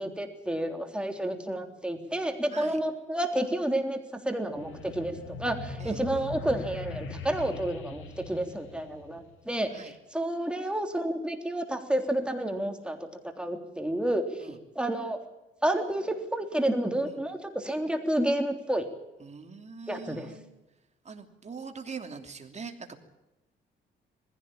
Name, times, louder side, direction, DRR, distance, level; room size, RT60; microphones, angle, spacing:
voice 1, 0.0-4.0 4.2-13.0 13.2-15.2 15.6-18.9 19.9-20.2, right 1 dB, 5° right, 5 dB, 3.5 m, -30 dB
sound 1, 4.5-9.5, left 3 dB, 85° left, 2.6 m, -41 dB
voice 2, 19.2-20.4 21.0-23.0, right 5 dB, 35° right, 5 dB, 3.0 m, -42 dB
20.5 x 16.0 x 8.8 m, 0.99 s
cardioid pair, 90°, 20 cm